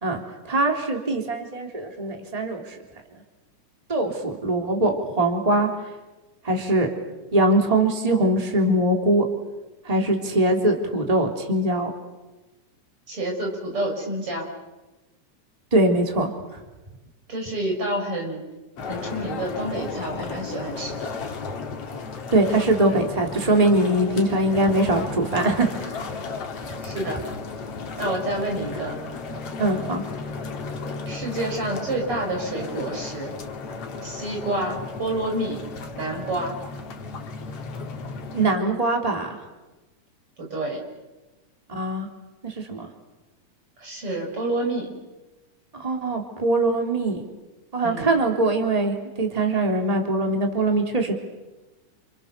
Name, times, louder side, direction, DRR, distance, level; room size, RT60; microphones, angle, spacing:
voice 1, 0.0-2.7 3.9-5.7 6.4-6.9 7.3-9.2 9.8-11.9 15.7-16.3 22.3-25.9 29.6-30.0 38.3-39.4 41.7-42.1 42.4-42.9 45.7-47.2 47.7-51.2, right 1 dB, 10° right, 3 dB, 3.3 m, -22 dB
voice 2, 13.1-14.5 17.3-18.4 18.9-21.1 26.8-27.2 28.0-29.0 31.1-33.3 34.0-35.6 36.0-36.6 40.4-40.8 43.8-44.9 47.8-48.1, right 1 dB, 45° right, 1 dB, 6.9 m, -28 dB
sound 1, 18.8-38.6, left 4 dB, 55° left, 3.0 m, -34 dB
29.5 x 29.0 x 6.9 m, 1.1 s
omnidirectional pair, 3.5 m